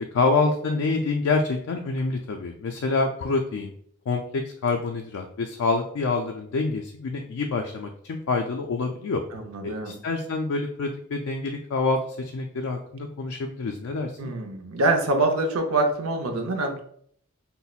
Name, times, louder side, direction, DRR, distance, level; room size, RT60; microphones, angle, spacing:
voice 1, 0.1-3.7 4.1-9.2 9.6-14.3, left 3 dB, 75° left, 3 dB, 0.4 m, -27 dB
voice 2, 9.3-10.0 14.2-16.8, right 2 dB, 80° right, 4 dB, 0.6 m, -25 dB
5.5 x 2.0 x 2.3 m, 0.62 s
head